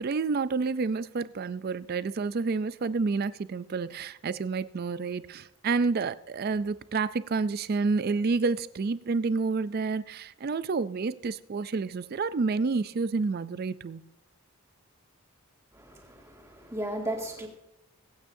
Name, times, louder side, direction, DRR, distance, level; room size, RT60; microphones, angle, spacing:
voice 1, 0.0-14.0, right 4 dB, 45° right, 0.4 m, -29 dB
voice 2, 15.7-17.5, right 1 dB, 15° right, 2.0 m, -35 dB
24.0 x 8.8 x 2.7 m
head